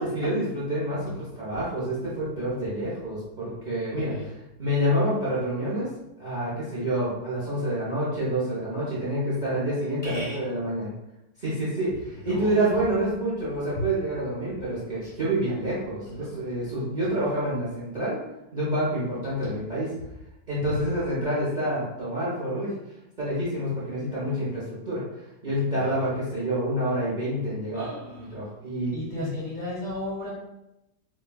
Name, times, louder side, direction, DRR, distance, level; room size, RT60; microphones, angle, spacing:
voice 1, 0.0-4.3 4.6-5.9 6.2-10.9 11.4-18.2 18.5-19.9 20.5-22.7 23.2-25.0 25.4-27.9 28.2-29.3, right 1 dB, 40° right, -8 dB, 0.7 m, -28 dB
voice 2, 10.0-10.4 25.8-25.9 27.7-28.2 28.9-30.3, left 1 dB, 35° left, -7 dB, 0.9 m, -34 dB
4.4 x 2.2 x 2.2 m, 0.91 s
omnidirectional pair, 1.6 m